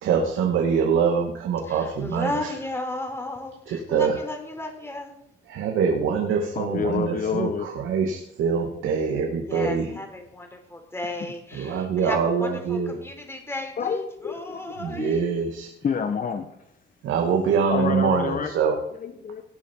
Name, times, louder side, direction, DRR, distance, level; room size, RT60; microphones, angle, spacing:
voice 1, 0.0-2.5 3.7-4.1 5.5-9.9 11.5-12.9 14.8-15.7 17.0-18.8, right 6 dB, 85° right, 2 dB, 2.1 m, -24 dB
voice 2, 1.6-5.2 9.4-15.2, left 2 dB, 10° left, 4 dB, 3.6 m, -34 dB
voice 3, 6.5-7.7 9.9-10.0 13.8-15.1 15.8-16.5 17.7-18.5 19.0-19.4, left 6 dB, 45° left, 7 dB, 1.4 m, -28 dB
19.0 x 7.3 x 4.7 m, 0.75 s
cardioid pair, 90°, 20 cm